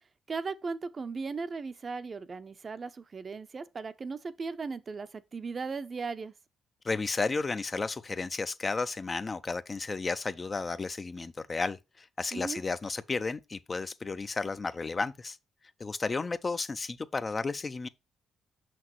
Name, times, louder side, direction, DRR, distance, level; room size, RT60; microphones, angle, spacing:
voice 1, 0.3-6.3 12.3-12.6, right 4 dB, 35° right, 0.5 m, -37 dB
voice 2, 6.8-15.4 15.8-17.9, left 4 dB, 30° left, 0.4 m, -33 dB
5.9 x 5.5 x 3.1 m
cardioid pair, 90°, 0 cm